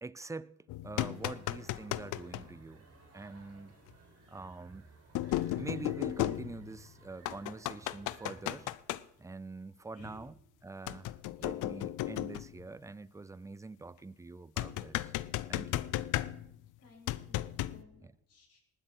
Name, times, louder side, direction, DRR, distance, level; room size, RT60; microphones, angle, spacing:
voice 1, 0.0-0.6 0.8-2.9 3.1-3.7 4.3-4.9 5.6-8.7 9.2-15.1 15.5-15.9 18.0-18.2, right 3 dB, 10° right, 0.4 m, -45 dB
sound 1, 0.7-2.5 3.9-4.0 5.1-6.9 7.3-9.0 10.9-12.6 14.6-16.6 17.1-17.8, left 15 dB, 85° left, 0.6 m, -35 dB
sound 2, 0.9-8.7, right 4 dB, 50° right, 3.9 m, -59 dB
voice 2, 11.4-11.7 16.8-17.4 17.7-18.6, left 4 dB, 55° left, 5.9 m, -55 dB
19.0 x 10.0 x 4.5 m
cardioid pair, 90°, 30 cm